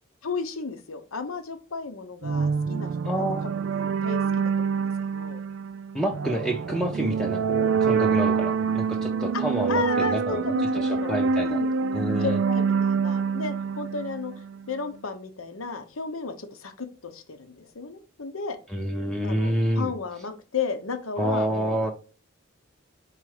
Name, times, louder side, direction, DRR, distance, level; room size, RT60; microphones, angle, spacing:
voice 1, 0.2-3.2 4.0-5.4 9.3-9.4 9.7-11.7 12.2-14.3 14.7-18.6 19.2-21.9, left 4 dB, 80° left, 8 dB, 0.9 m, -34 dB
sound 1, 2.2-14.7, right 5 dB, 65° right, 0.3 m, -26 dB
voice 2, 3.0-3.4 5.9-7.4 7.8-11.6 11.9-12.4 18.7-19.9 21.2-21.9, right 1 dB, ahead, 1 dB, 0.6 m, -28 dB
4.7 x 4.2 x 4.9 m, 0.36 s
head